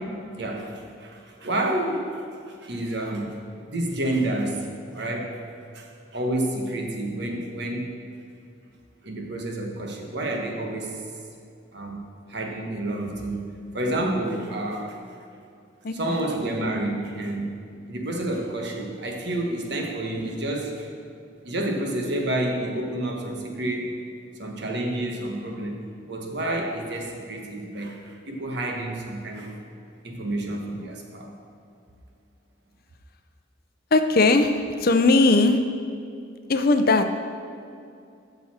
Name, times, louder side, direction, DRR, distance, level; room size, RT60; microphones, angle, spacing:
voice 1, 0.4-2.2 2.6-3.4 3.7-4.7 4.9-5.4 5.7-8.0 9.0-11.0 11.7-15.0 15.9-17.6 17.9-20.9 21.4-24.0 24.4-29.6 30.0-31.3, right 1 dB, 60° right, 1 dB, 1.3 m, -29 dB
voice 2, 33.9-34.5 34.8-35.6 36.5-37.1, left 3 dB, 50° left, 8 dB, 0.6 m, -18 dB
12.0 x 6.8 x 4.3 m, 2.5 s
head